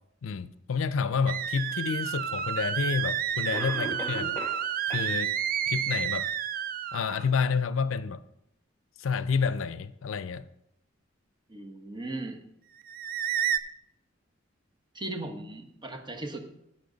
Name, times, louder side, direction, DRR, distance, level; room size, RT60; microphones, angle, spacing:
voice 1, 0.2-4.4 4.9-5.3 5.7-6.3 6.9-8.2 9.0-10.4, left 5 dB, 85° left, 0.5 m, -29 dB
sound 1, 1.3-7.3 12.8-13.6, right 9 dB, 45° right, 0.4 m, -30 dB
Cough, 2.4-2.5 3.5-4.6 4.9-5.0 5.6-5.7 6.2-6.3, equal, 10° left, 1.4 m, -37 dB
voice 2, 11.5-12.4 14.9-16.4, right 2 dB, 25° right, 1.1 m, -37 dB
10.5 x 7.6 x 3.9 m
head